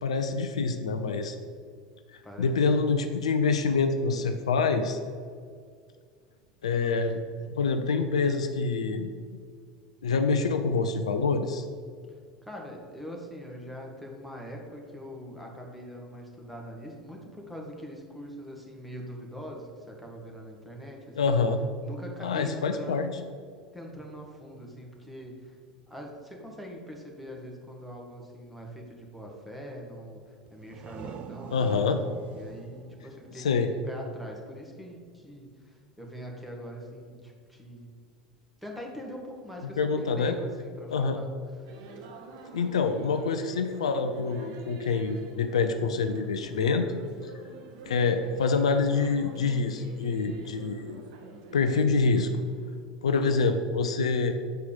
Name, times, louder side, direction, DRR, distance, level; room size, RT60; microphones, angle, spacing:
voice 1, 0.0-1.4 2.4-5.0 6.6-7.2 7.6-9.1 10.0-11.6 21.2-21.6 22.2-23.1 31.5-32.0 33.4-33.7 39.8-40.3 40.9-41.2 42.5-46.9 47.9-51.0 51.5-52.3 53.0-54.4, left 4 dB, 75° left, 7 dB, 0.5 m, -26 dB
voice 2, 2.2-2.5 12.4-21.3 21.8-23.1 23.7-25.6 25.9-37.9 38.6-41.3 41.6-41.9 42.4-42.5, equal, ahead, -1 dB, 1.6 m, -43 dB
sound 1, 30.5-34.1, right 8 dB, 40° right, 0.4 m, -45 dB
sound 2, 41.7-52.8, right 3 dB, 60° right, 0.9 m, -47 dB
6.8 x 4.7 x 5.3 m, 2.1 s
figure-of-eight pair, 80°, 3 cm